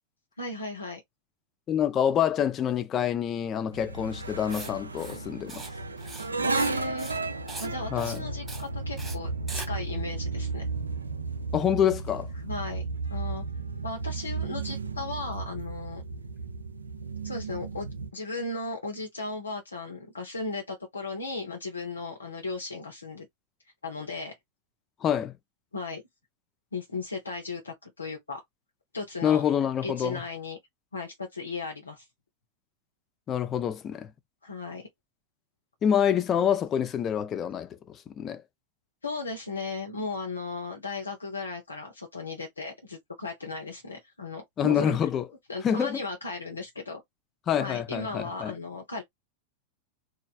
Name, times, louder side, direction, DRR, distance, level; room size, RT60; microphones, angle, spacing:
voice 1, 0.4-1.0 6.4-7.1 7.6-10.7 12.4-13.4 13.8-16.0 17.2-23.3 23.8-24.3 25.7-26.0 26.7-28.4 28.9-29.4 29.8-30.6 30.9-32.1 34.4-34.9 39.0-45.0 45.5-47.0 47.5-49.0, left 3 dB, 75° left, 0.8 m, -36 dB
voice 2, 1.7-5.6 7.9-8.2 11.5-12.3 25.0-25.3 29.2-30.2 33.3-34.1 35.8-38.4 44.6-45.2 45.6-46.0 47.5-48.5, left 9 dB, 30° left, 0.5 m, -26 dB
sound 1, 3.7-18.1, right 3 dB, 75° right, 0.4 m, -34 dB
Writing, 4.5-4.7 5.0-5.2 5.5-5.7 6.0-6.7 7.0-7.2 7.5-7.7 8.0-8.2 8.5-8.7 9.0-9.2 9.5-9.7, right 3 dB, 10° right, 0.7 m, -40 dB
3.1 x 2.4 x 2.3 m
figure-of-eight pair, 90°, 0 cm